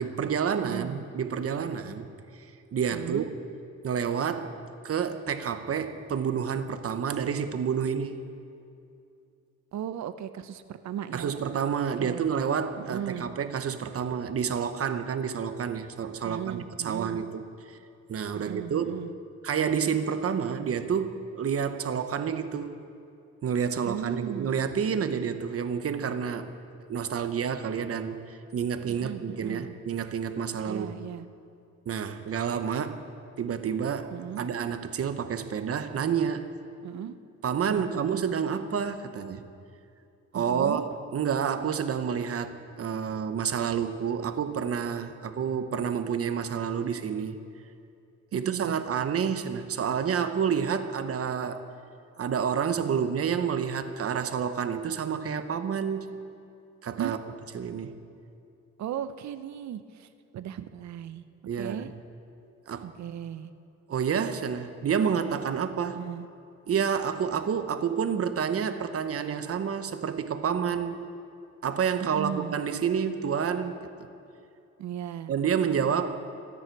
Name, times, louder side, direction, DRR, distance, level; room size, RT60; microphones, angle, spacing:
voice 1, 0.0-2.1 2.4-3.3 3.8-4.6 4.8-8.2 11.1-17.8 18.1-19.0 19.4-22.8 23.4-26.5 26.9-30.9 31.9-33.1 33.4-36.5 37.4-39.4 40.3-40.8 41.1-47.4 48.3-51.6 52.2-56.1 56.8-57.2 57.5-58.0 61.5-61.9 62.7-62.9 63.9-66.0 66.7-71.1 71.6-74.1 75.3-76.2, right 7 dB, 50° right, 9 dB, 1.1 m, -29 dB
voice 2, 0.6-1.0 2.9-3.3 9.7-11.3 12.0-12.3 12.8-13.3 16.2-17.2 18.3-19.1 23.8-24.5 28.9-29.7 30.7-31.3 34.1-34.5 36.8-37.1 37.7-38.2 40.3-40.9 48.3-48.8 57.0-57.1 58.8-61.2 61.6-61.9 62.8-63.5 65.9-66.3 72.1-72.5 74.8-75.3, right 10 dB, 65° right, 12 dB, 0.8 m, -36 dB
27.5 x 9.7 x 4.7 m, 2.6 s
cardioid pair, 90°, 30 cm